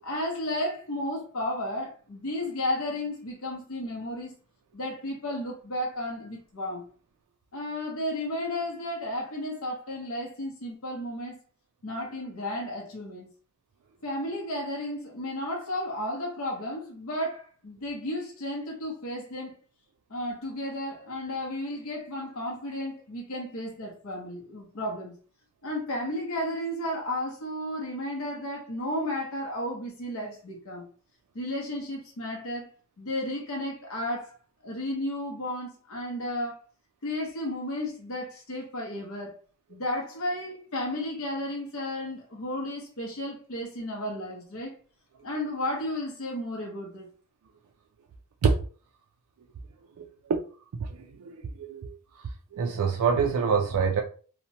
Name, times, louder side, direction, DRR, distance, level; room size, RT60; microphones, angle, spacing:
voice 1, 0.0-4.3 4.7-6.8 7.5-11.4 11.8-13.3 14.0-19.5 20.1-25.1 25.6-30.8 31.3-32.7 33.0-34.3 34.6-36.5 37.0-39.3 39.7-44.7 45.2-47.1, left 1 dB, 70° left, 0.7 m, -33 dB
voice 2, 50.0-50.4 50.8-51.9 52.2-54.0, right 5 dB, 85° right, 0.3 m, -26 dB
2.8 x 2.1 x 2.7 m
head